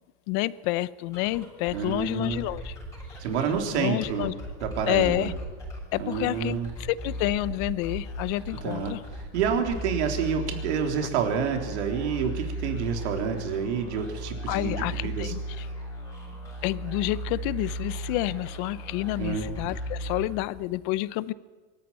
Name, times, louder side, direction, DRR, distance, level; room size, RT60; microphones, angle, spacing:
voice 1, 0.3-2.8 3.7-4.3 4.9-5.3 5.9-9.0 14.5-15.7 16.6-21.3, left 17 dB, 45° left, 18 dB, 0.7 m, -29 dB
sound 1, 1.1-20.8, right 1 dB, 10° left, 6.0 m, -37 dB
voice 2, 1.7-2.4 3.2-4.3 4.6-5.3 6.0-6.7 8.6-9.0 9.3-15.3 19.2-19.5, right 7 dB, 80° right, 4 dB, 3.7 m, -28 dB
23.5 x 13.5 x 8.9 m, 1.4 s
supercardioid pair, 160°, 34 cm